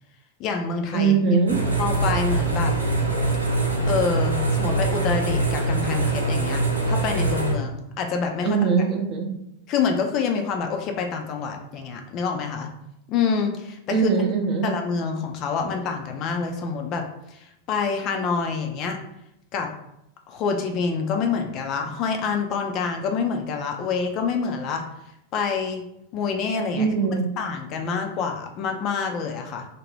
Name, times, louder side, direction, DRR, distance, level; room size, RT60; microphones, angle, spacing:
voice 1, 0.4-1.1 1.8-2.7 3.8-8.6 9.7-12.7 13.1-14.1 14.6-19.0 19.5-19.7 20.3-24.8 25.3-25.8 26.1-26.9 27.4-29.7, left 5 dB, 35° left, 4 dB, 0.4 m, -27 dB
voice 2, 0.9-1.6 8.4-9.3 13.9-14.7 26.7-27.3, right 5 dB, 35° right, 2 dB, 0.6 m, -21 dB
sound 1, 1.5-7.5, right 2 dB, 80° right, 0.5 m, -23 dB
2.7 x 2.1 x 3.2 m, 0.81 s
figure-of-eight pair, 90°, 0 cm